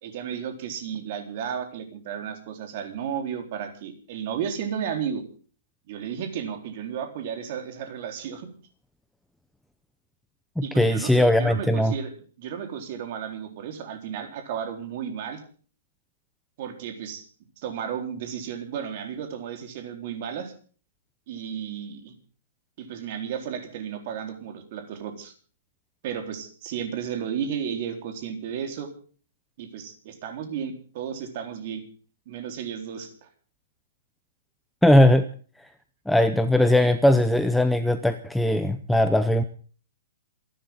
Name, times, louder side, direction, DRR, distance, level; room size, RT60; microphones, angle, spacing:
voice 1, 0.0-5.2 5.9-8.5 10.6-12.1 12.4-15.4 16.6-17.3 17.6-20.5 21.3-22.1 22.8-25.3 26.0-28.9 29.6-31.8 32.3-33.3, right 8 dB, 35° right, 5 dB, 4.1 m, -33 dB
voice 2, 10.6-11.9 34.8-35.3 36.1-39.4, left 1 dB, ahead, 9 dB, 0.7 m, -19 dB
27.5 x 12.0 x 3.9 m, 0.42 s
hypercardioid pair, 175°, 0 cm